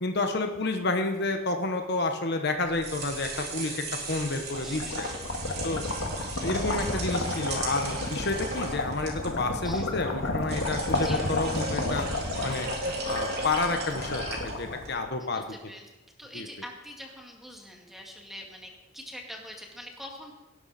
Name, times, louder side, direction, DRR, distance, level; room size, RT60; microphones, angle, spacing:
voice 1, 0.0-5.1 5.6-5.8 6.4-12.0 12.4-15.4 16.3-16.5, left 3 dB, 55° left, 5 dB, 1.2 m, -30 dB
sound 1, 2.6-15.0, right 2 dB, 55° right, 3.6 m, -37 dB
sound 2, 4.2-15.4, left 2 dB, 90° left, 2.0 m, -32 dB
voice 2, 4.6-5.2 9.6-9.9 10.9-11.2 15.2-15.8 16.2-20.3, left 1 dB, ahead, 0 dB, 2.2 m, -44 dB
18.5 x 11.5 x 4.3 m, 1.0 s
head